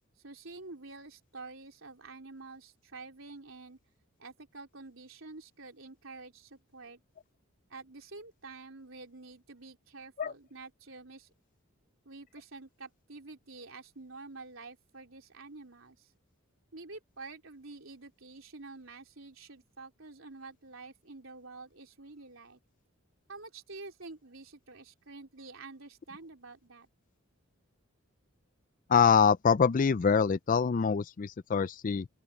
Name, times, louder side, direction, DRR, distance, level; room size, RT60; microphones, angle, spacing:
voice 1, 0.2-3.8 4.2-7.0 7.7-11.3 12.1-16.1 16.7-22.6 23.3-26.9, right 3 dB, 65° right, 3.9 m, -48 dB
voice 2, 28.9-32.1, left 6 dB, 40° left, 0.4 m, -25 dB
open air
head